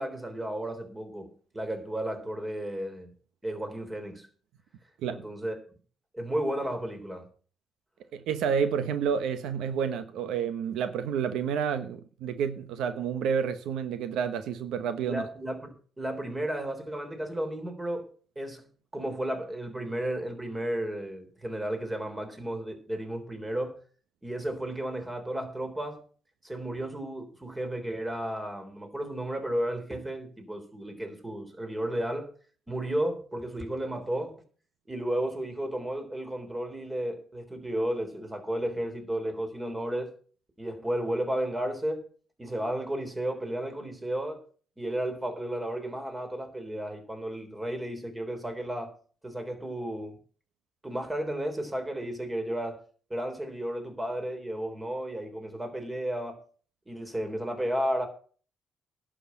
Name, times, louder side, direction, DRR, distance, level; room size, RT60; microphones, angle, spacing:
voice 1, 0.0-3.1 3.4-4.3 5.1-5.5 6.1-7.3 15.0-18.1 18.3-18.7 18.9-23.8 24.2-26.0 26.4-32.3 32.7-34.4 34.9-40.1 40.6-42.0 42.4-44.4 44.8-48.9 49.2-50.2 50.8-52.8 53.1-56.4 56.9-58.1, right 1 dB, 15° right, 3.5 m, -33 dB
voice 2, 8.1-15.2, right 7 dB, 85° right, 1.0 m, -29 dB
11.0 x 6.3 x 8.5 m
cardioid pair, 90°, 0 cm